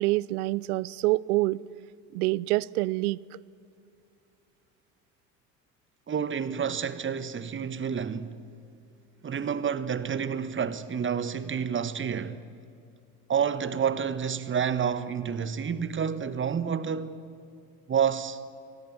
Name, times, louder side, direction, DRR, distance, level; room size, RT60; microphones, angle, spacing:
voice 1, 0.0-1.6 2.1-3.2, right 20 dB, 65° right, 0.6 m, -26 dB
voice 2, 6.1-8.4 9.2-12.4 13.3-17.2 17.9-18.4, right 7 dB, 25° right, 1.3 m, -29 dB
24.5 x 17.0 x 8.6 m
figure-of-eight pair, 65°, 48 cm